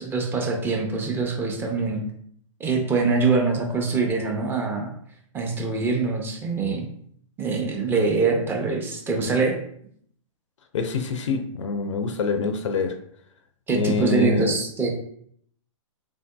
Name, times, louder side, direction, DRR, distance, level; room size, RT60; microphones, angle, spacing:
voice 1, 0.0-2.0 2.6-4.9 5.3-6.9 7.4-9.5 13.7-14.9, right 4 dB, 15° right, 1 dB, 0.6 m, -24 dB
voice 2, 10.7-12.9 13.7-14.5, left 5 dB, 65° left, 7 dB, 0.4 m, -25 dB
3.6 x 2.6 x 2.2 m, 0.65 s
hypercardioid pair, 120°, 17 cm